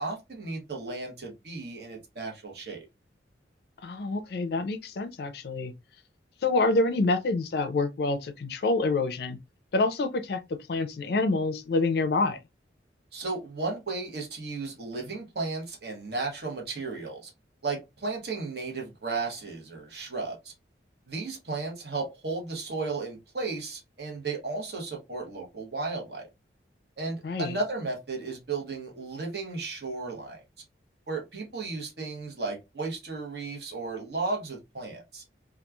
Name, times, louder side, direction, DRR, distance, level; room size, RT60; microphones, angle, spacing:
voice 1, 0.0-2.8 13.1-17.3 17.6-20.5 21.1-26.3 27.0-30.4 31.1-35.2, right 3 dB, 65° right, 1.0 m, -34 dB
voice 2, 3.8-5.7 6.4-9.4 9.7-12.4 27.2-27.6, left 3 dB, 60° left, 0.4 m, -27 dB
2.9 x 2.3 x 2.2 m
head